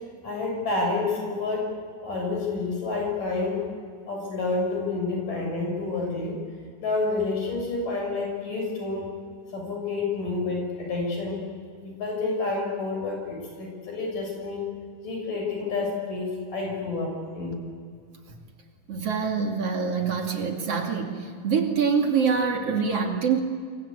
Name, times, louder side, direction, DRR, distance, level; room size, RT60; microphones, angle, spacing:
voice 1, 0.2-1.7 2.0-3.7 4.1-6.4 6.8-9.1 9.5-11.4 11.8-14.6 15.0-17.6, left 3 dB, 80° left, 1 dB, 8.3 m, -29 dB
voice 2, 18.9-21.1 21.4-23.4, right 6 dB, 50° right, 2 dB, 3.3 m, -25 dB
27.0 x 24.0 x 8.5 m, 2.1 s
omnidirectional pair, 3.7 m